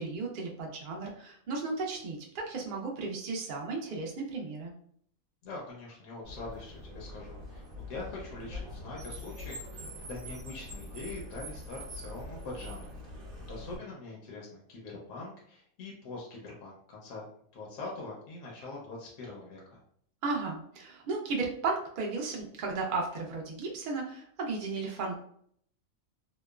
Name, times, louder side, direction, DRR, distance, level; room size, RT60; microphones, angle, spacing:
voice 1, 0.0-4.7 20.2-25.2, right 3 dB, 65° right, -1 dB, 0.5 m, -34 dB
voice 2, 5.4-17.2 17.5-19.8, left 3 dB, 70° left, -2 dB, 1.0 m, -43 dB
Car, 6.2-13.8, left 1 dB, 45° right, 1.0 m, -43 dB
2.8 x 2.1 x 2.3 m, 0.64 s
omnidirectional pair, 1.4 m